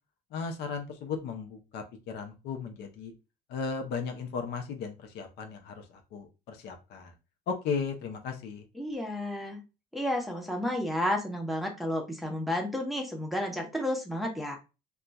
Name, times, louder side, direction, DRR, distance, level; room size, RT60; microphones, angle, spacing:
voice 1, 0.3-3.1 3.5-7.1 7.5-8.6, left 5 dB, 80° left, 5 dB, 0.7 m, -36 dB
voice 2, 8.8-9.6 9.9-14.6, left 1 dB, ahead, 1 dB, 0.8 m, -31 dB
2.3 x 2.3 x 3.9 m, 0.29 s
cardioid pair, 110°, 17 cm